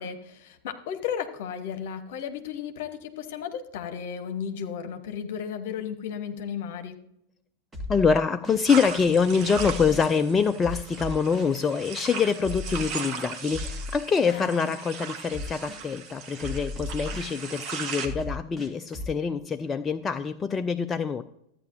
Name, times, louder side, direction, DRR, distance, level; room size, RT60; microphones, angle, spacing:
voice 1, 0.0-7.0 14.3-14.4, left 8 dB, 50° left, 8 dB, 1.1 m, -34 dB
sound 1, 7.7-8.7 9.5-10.1 10.6-11.6 12.4-12.9 13.5-14.5 15.3-15.9 16.4-17.4 18.0-19.1, left 2 dB, 15° right, 2.0 m, -36 dB
voice 2, 7.9-21.2, left 5 dB, 20° left, 9 dB, 0.4 m, -25 dB
sound 2, 8.7-18.1, right 6 dB, 35° right, 1.4 m, -38 dB
13.5 x 9.2 x 2.6 m, 0.75 s
figure-of-eight pair, 90°, 0 cm